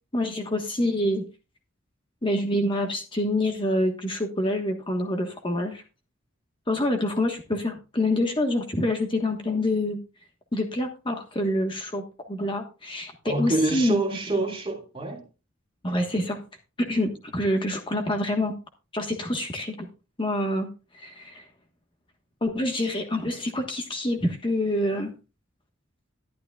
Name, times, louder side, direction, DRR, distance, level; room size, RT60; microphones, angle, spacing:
voice 1, 0.1-1.3 2.2-5.8 6.7-10.0 10.5-12.0 12.3-14.0 15.8-16.4 16.8-18.5 18.9-19.9 20.2-21.5 22.4-25.1, left 1 dB, 25° left, 1.4 m, -26 dB
voice 2, 13.2-15.3, right 2 dB, 25° right, 2.6 m, -26 dB
12.5 x 11.5 x 2.4 m
head